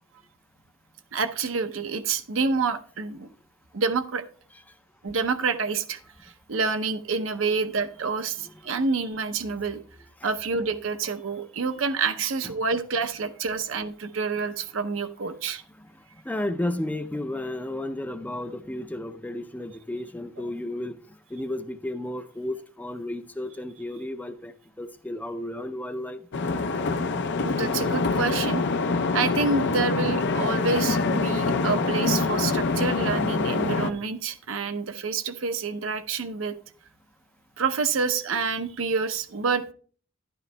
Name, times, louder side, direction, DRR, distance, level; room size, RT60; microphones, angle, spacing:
voice 1, 1.1-3.3 3.7-4.2 5.0-9.8 10.2-15.6 27.4-28.6 29.1-36.5 37.6-39.7, right 4 dB, 70° right, 9 dB, 0.7 m, -28 dB
voice 2, 16.3-21.0 21.3-24.5 24.8-26.2, left 1 dB, 10° left, 7 dB, 0.4 m, -33 dB
sound 1, 26.3-33.9, left 3 dB, 60° left, 0.6 m, -25 dB
12.0 x 10.5 x 2.2 m, 0.43 s
head